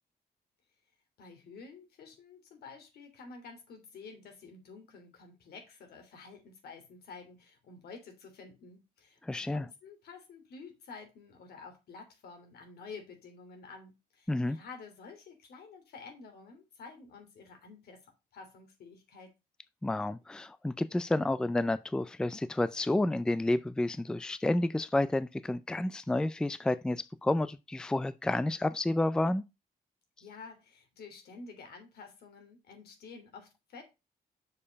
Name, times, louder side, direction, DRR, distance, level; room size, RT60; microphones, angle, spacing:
voice 1, 1.2-19.3 30.2-33.8, left 4 dB, 85° left, 3.2 m, -50 dB
voice 2, 9.2-9.7 14.3-14.6 19.8-29.4, left 2 dB, 5° left, 0.4 m, -30 dB
6.6 x 5.5 x 5.2 m
cardioid pair, 140°, 16 cm